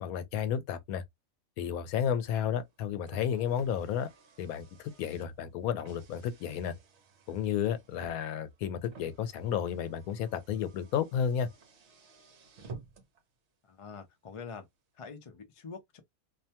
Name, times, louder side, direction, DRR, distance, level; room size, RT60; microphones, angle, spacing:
voice 1, 0.0-1.0 1.6-4.1 4.4-4.7 5.0-6.7 7.3-11.5, left 8 dB, 85° left, 1.0 m, -32 dB
Car, 2.6-13.2, right 4 dB, 60° right, 0.9 m, -54 dB
voice 2, 13.6-14.6 14.9-16.0, left 5 dB, 55° left, 0.3 m, -45 dB
2.6 x 2.2 x 2.7 m
omnidirectional pair, 1.5 m